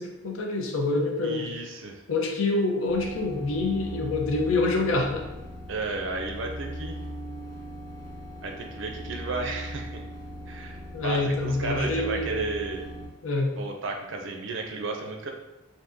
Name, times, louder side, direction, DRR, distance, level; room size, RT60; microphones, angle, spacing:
voice 1, 0.0-1.5 2.1-5.3 10.9-12.4 13.2-13.5, left 2 dB, 80° left, 1 dB, 0.6 m, -26 dB
voice 2, 1.2-2.0 5.7-7.0 8.4-10.0 10.5-12.9 13.5-15.3, right 3 dB, 65° right, 3 dB, 0.4 m, -33 dB
sound 1, 2.9-13.1, equal, 15° left, 0.7 m, -39 dB
3.5 x 2.6 x 2.6 m, 0.96 s
head